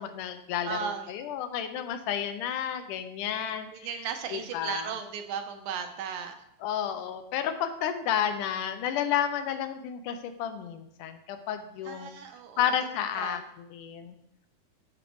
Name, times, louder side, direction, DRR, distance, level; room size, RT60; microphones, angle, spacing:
voice 1, 0.0-3.9 4.3-4.9 6.6-12.1 12.6-14.2, left 9 dB, 85° left, 8 dB, 2.2 m, -31 dB
voice 2, 0.7-1.1 3.7-6.4 11.9-12.7 13.2-13.4, right 7 dB, 75° right, 6 dB, 2.1 m, -36 dB
12.0 x 5.2 x 3.1 m, 0.76 s
omnidirectional pair, 3.7 m